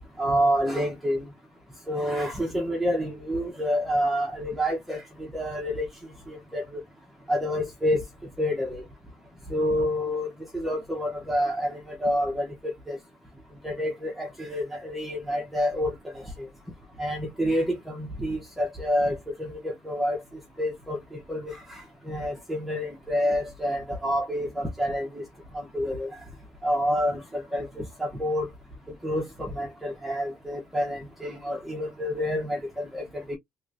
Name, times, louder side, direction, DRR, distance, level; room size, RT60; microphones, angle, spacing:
voice 1, 0.2-1.2 1.9-5.0 5.3-5.8 6.5-6.6 7.3-8.0 8.4-8.8 9.5-10.3 10.5-12.5 12.9-13.0 13.6-15.9 17.0-19.1 19.8-20.2 20.6-21.0 21.3-21.5 22.1-25.2 25.7-26.1 26.6-27.2 27.5-27.7 28.0-28.5 29.0-29.2 29.5-33.0 33.3-33.4, equal, 5° right, 0.9 m, -27 dB
3.1 x 3.1 x 2.5 m
cardioid pair, 150°, 5 cm